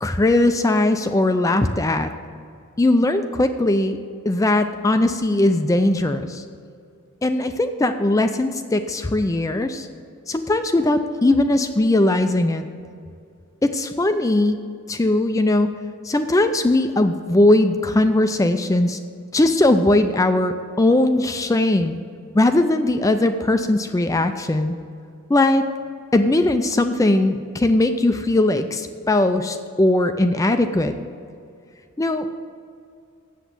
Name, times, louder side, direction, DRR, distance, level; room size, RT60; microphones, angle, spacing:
voice 1, 0.0-2.1 2.8-4.0 4.3-6.4 7.2-9.9 10.3-12.7 13.6-14.6 14.9-15.7 16.0-19.0 19.3-22.0 22.3-24.7 25.3-25.6 26.1-30.9 32.0-32.3, left 2 dB, 15° left, 8 dB, 0.3 m, -19 dB
8.0 x 7.2 x 8.1 m, 2.4 s
head